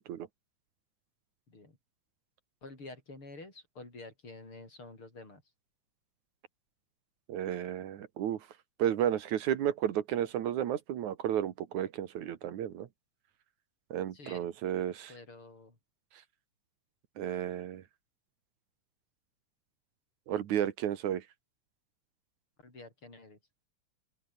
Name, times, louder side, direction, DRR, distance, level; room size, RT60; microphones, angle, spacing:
voice 1, 2.6-5.4 14.1-14.5 15.1-15.8 22.6-23.4, left 2 dB, 40° left, 7.9 m, -49 dB
voice 2, 7.3-8.4 8.8-12.9 13.9-15.1 17.2-17.8 20.3-21.2, right 10 dB, 75° right, 2.8 m, -32 dB
open air
omnidirectional pair, 3.5 m